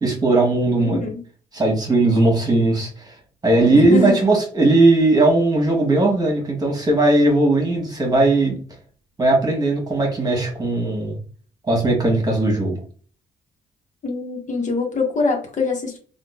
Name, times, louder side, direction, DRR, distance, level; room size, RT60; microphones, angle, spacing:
voice 1, 0.0-1.0 1.5-3.1 3.4-8.6 9.2-11.2 11.6-12.8, right 2 dB, 25° right, 0 dB, 1.5 m, -18 dB
voice 2, 0.8-1.2 3.7-4.2 14.0-16.0, left 4 dB, 55° left, 1 dB, 1.3 m, -23 dB
3.6 x 2.5 x 2.4 m, 0.41 s
cardioid pair, 85°, 16 cm